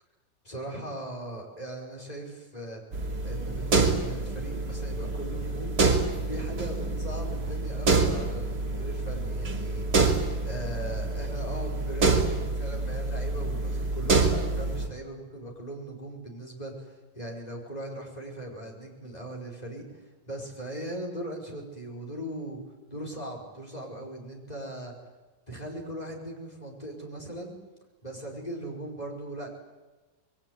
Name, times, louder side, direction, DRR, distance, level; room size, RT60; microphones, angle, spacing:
voice 1, 0.4-2.8 3.2-5.8 6.2-10.1 10.4-22.6 22.9-24.9 25.5-27.6 28.0-29.5, right 1 dB, 20° left, 0 dB, 5.5 m, -39 dB
sound 1, 2.9-14.9, right 3 dB, 65° right, 3.3 m, -27 dB
26.5 x 21.5 x 9.5 m, 1.2 s
omnidirectional pair, 2.0 m